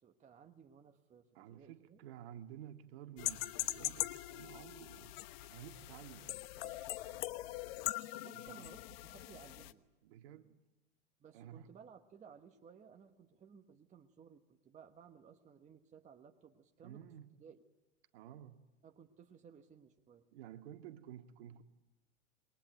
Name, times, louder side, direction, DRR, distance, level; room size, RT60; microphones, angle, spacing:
voice 1, 0.0-2.0 8.2-9.8 11.2-17.0 17.4-17.6 18.8-20.2, right 7 dB, 20° right, 6 dB, 1.3 m, -59 dB
voice 2, 1.3-5.1 5.4-6.8 7.1-7.2 8.1-8.7 10.0-10.6 11.3-11.7 16.8-17.3 18.1-18.6 20.3-21.6, right 10 dB, 55° right, 6 dB, 2.0 m, -53 dB
sound 1, 3.2-9.7, left 16 dB, 50° left, 1.2 m, -42 dB
27.5 x 22.0 x 9.1 m, 1.1 s
hypercardioid pair, 120°, 37 cm